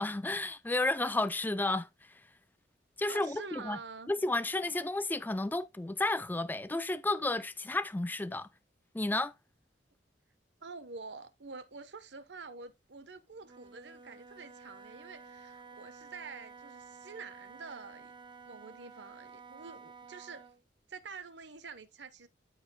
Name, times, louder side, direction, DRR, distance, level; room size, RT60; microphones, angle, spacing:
voice 1, 0.0-1.9 3.0-3.8 4.1-8.5 8.9-9.3, left 2 dB, 10° left, 0.4 m, -32 dB
voice 2, 3.1-4.1 10.6-18.1 18.5-20.4 20.9-22.3, right 4 dB, 70° right, 1.0 m, -47 dB
Wind instrument woodwind instrument, 13.4-20.6, right 4 dB, 25° right, 0.7 m, -52 dB
13.0 x 5.7 x 2.2 m
head